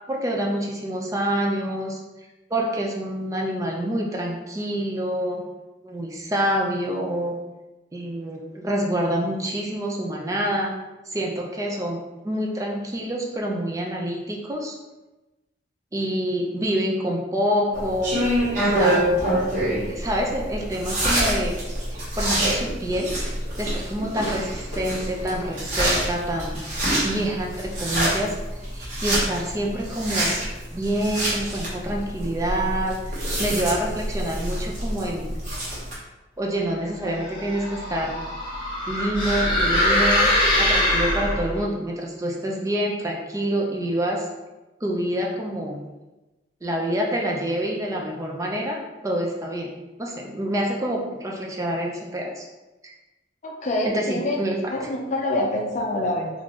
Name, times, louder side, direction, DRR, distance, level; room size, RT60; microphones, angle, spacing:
voice 1, 0.1-2.0 2.5-5.4 5.8-7.3 7.9-10.7 11.1-14.8 15.9-18.2 18.5-19.2 19.9-21.6 22.2-23.1 23.6-26.6 26.9-28.4 28.7-30.4 30.7-35.3 36.4-38.2 38.9-40.3 40.6-44.3 44.8-45.8 46.6-49.7 50.0-52.5 53.8-54.9, right 1 dB, 20° right, -1 dB, 0.4 m, -27 dB
sound 1, 17.7-35.9, right 1 dB, 45° right, 1.3 m, -26 dB
sound 2, 37.2-41.6, left 1 dB, 25° left, 1.1 m, -22 dB
voice 2, 53.4-54.4 54.7-56.3, left 1 dB, 40° left, 1 dB, 0.5 m, -26 dB
3.6 x 2.5 x 3.0 m, 1.1 s
head